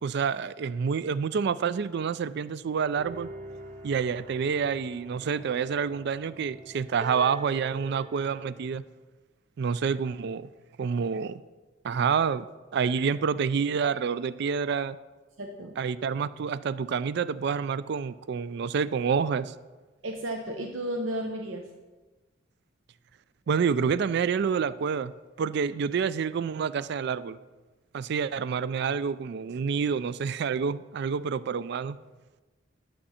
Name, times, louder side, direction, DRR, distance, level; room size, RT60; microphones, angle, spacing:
voice 1, 0.0-3.3 3.8-8.8 9.6-10.5 10.8-11.4 11.8-12.5 12.7-15.0 15.8-19.5 23.5-25.1 25.4-27.4 27.9-32.0, right 6 dB, 60° right, 16 dB, 0.3 m, -28 dB
sound 1, 3.0-8.7, right 2 dB, 35° right, 1.4 m, -45 dB
voice 2, 15.4-15.8 20.0-21.7, right 1 dB, 85° right, 2 dB, 0.8 m, -33 dB
11.5 x 7.2 x 4.3 m, 1.2 s
head